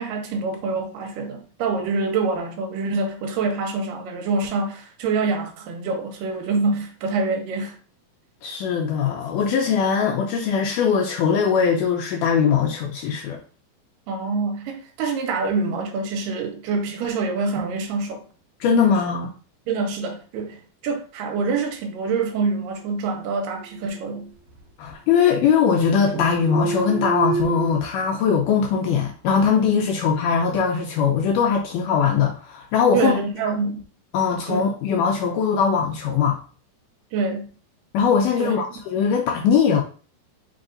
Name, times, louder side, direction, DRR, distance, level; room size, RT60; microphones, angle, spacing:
voice 1, 0.0-7.8 14.1-18.2 18.9-19.2 19.7-24.3 32.9-33.8 34.5-34.6 37.1-37.5 38.4-38.6, right 4 dB, 75° right, 2.4 m, -26 dB
voice 2, 8.4-13.4 18.6-19.3 24.8-33.1 34.1-36.4 37.9-39.8, left 6 dB, 80° left, 1.9 m, -21 dB
sound 1, 23.6-24.6 24.9-25.8 26.1-27.7, right 4 dB, 55° right, 2.1 m, -29 dB
5.3 x 2.4 x 3.8 m
omnidirectional pair, 4.1 m